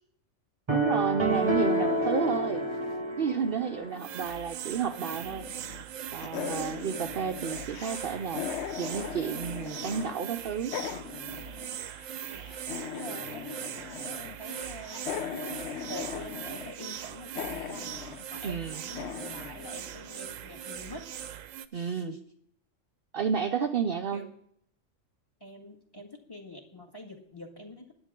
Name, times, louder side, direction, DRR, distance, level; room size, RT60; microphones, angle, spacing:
sound 1, 0.7-3.9, right 1 dB, 25° right, 1.0 m, -28 dB
voice 1, 0.7-2.7 3.2-5.5 6.1-8.4 8.8-10.7 18.4-18.8 21.7-22.1 23.1-24.2, right 7 dB, 55° right, 6 dB, 0.7 m, -31 dB
sound 2, 1.3-4.3 4.6-5.9 6.2-10.1 10.4-20.5, left 8 dB, 65° left, 0.9 m, -40 dB
sound 3, 4.0-21.7, right 10 dB, 85° right, 1.0 m, -40 dB
voice 2, 12.3-21.1 21.7-22.2 24.1-24.3 25.4-27.9, left 1 dB, 20° left, 2 dB, 2.0 m, -46 dB
16.0 x 10.5 x 3.7 m, 0.69 s
omnidirectional pair, 1.3 m